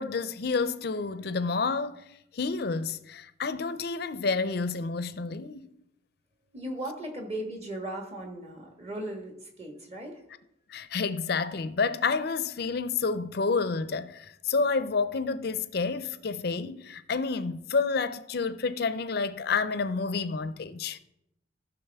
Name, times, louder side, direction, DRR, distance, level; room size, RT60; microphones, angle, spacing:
voice 1, 0.0-2.0 2.3-5.7 10.7-21.0, left 4 dB, 50° left, 0.5 m, -29 dB
voice 2, 6.5-10.1, right 1 dB, 30° right, 1.5 m, -37 dB
14.5 x 6.1 x 3.5 m
head